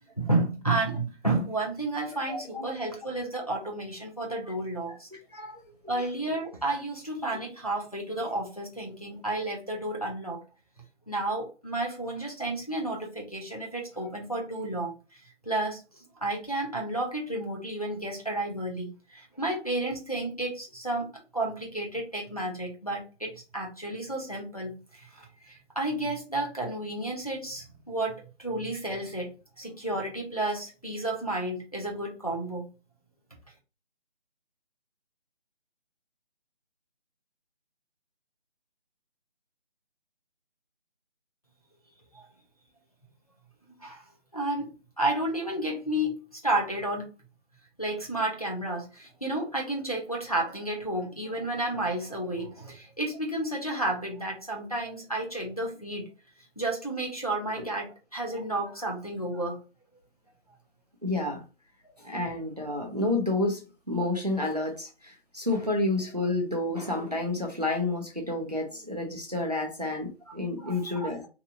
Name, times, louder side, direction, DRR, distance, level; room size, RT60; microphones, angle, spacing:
voice 1, 0.2-5.1 5.9-10.4 11.1-14.9 15.4-15.8 16.2-29.3 29.6-32.7 42.1-42.3 43.8-44.0 44.3-47.1 47.8-56.1 56.6-59.6 70.3-70.9, right 2 dB, 35° left, 0.5 m, -31 dB
voice 2, 2.3-2.7 5.3-5.6 57.6-57.7 61.0-61.4 62.0-63.6 63.9-71.3, left 2 dB, 35° right, 0.4 m, -30 dB
2.8 x 2.0 x 2.5 m
figure-of-eight pair, 165°, 35 cm